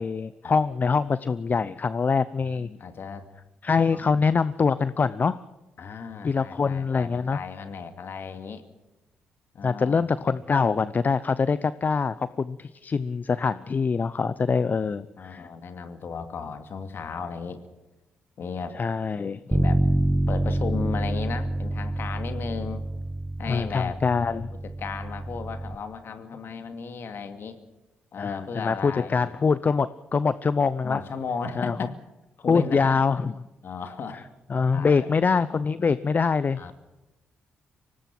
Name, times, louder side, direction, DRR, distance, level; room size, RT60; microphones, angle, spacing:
voice 1, 0.0-2.7 3.6-5.4 6.2-7.4 9.6-15.5 18.7-19.4 23.5-24.5 28.2-31.0 31.6-31.8 32.5-33.3 34.5-36.7, left 5 dB, 40° left, 16 dB, 0.7 m, -24 dB
voice 2, 2.5-3.3 3.9-4.2 5.8-8.6 9.5-10.0 14.8-17.6 18.4-18.8 19.5-19.8 20.3-22.8 23.4-24.0 24.6-27.6 28.1-29.4 30.8-32.0 32.4-34.3 34.7-35.1 36.6-36.7, left 5 dB, 60° left, 8 dB, 2.4 m, -35 dB
Bass guitar, 19.5-25.8, right 1 dB, 15° right, 1.3 m, -27 dB
24.5 x 19.0 x 6.1 m, 1.0 s
hypercardioid pair, 45°, 4 cm